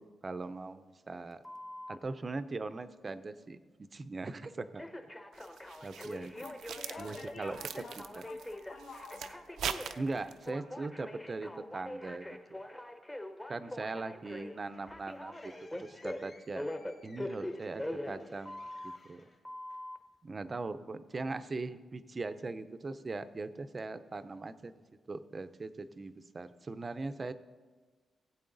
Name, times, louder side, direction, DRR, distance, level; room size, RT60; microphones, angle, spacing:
voice 1, 0.0-1.4 1.9-4.8 5.8-6.3 7.0-7.8 8.2-8.3 10.0-12.4 13.5-15.5 15.8-16.6 17.0-19.2 20.2-24.8 25.1-27.3, right 3 dB, 25° right, 12 dB, 0.5 m, -40 dB
Telephone, 1.4-2.0 4.8-19.0 19.4-20.0, left 1 dB, 10° left, 0.7 m, -43 dB
sound 1, 5.4-10.5, right 8 dB, 90° right, 0.5 m, -42 dB
voice 2, 6.3-9.3, left 3 dB, 65° left, -2 dB, 1.4 m, -49 dB
sound 2, 14.4-20.2, left 3 dB, 35° left, 1.3 m, -61 dB
18.0 x 8.3 x 3.9 m, 1.4 s
wide cardioid pair, 150°, 0 cm